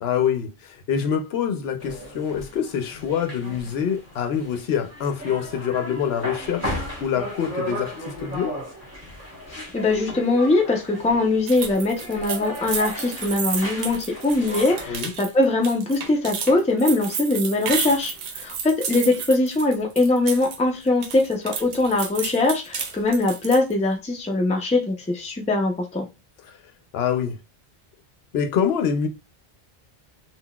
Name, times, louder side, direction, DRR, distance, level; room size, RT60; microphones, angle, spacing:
voice 1, 0.0-7.9 8.2-8.5 14.9-15.1 26.5-26.6 26.9-27.4 28.3-29.1, left 8 dB, 75° left, 0.8 m, -25 dB
sound 1, 1.8-15.1, left 1 dB, 15° right, 1.0 m, -35 dB
voice 2, 9.5-26.0, left 2 dB, 10° left, 0.4 m, -22 dB
sound 2, 11.5-20.6 20.9-23.7, right 6 dB, 65° right, 0.8 m, -32 dB
3.8 x 2.2 x 2.2 m
omnidirectional pair, 1.1 m